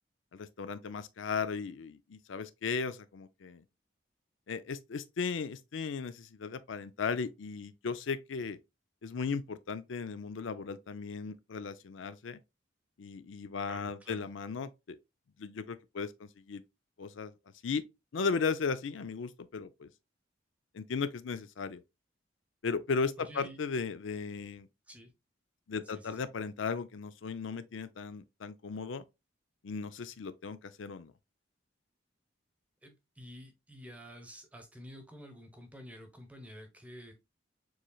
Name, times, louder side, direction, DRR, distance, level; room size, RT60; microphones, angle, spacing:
voice 1, 0.3-3.6 4.5-8.6 9.0-12.4 13.0-15.0 15.4-16.6 17.0-17.3 17.6-17.8 18.1-19.9 20.7-21.8 22.6-24.7 25.7-29.0 29.6-31.1, left 5 dB, 85° left, 0.5 m, -36 dB
voice 2, 13.7-14.3 23.3-23.6 24.9-25.1 26.2-26.3 32.8-37.1, equal, 5° right, 0.9 m, -49 dB
7.0 x 3.1 x 2.3 m
head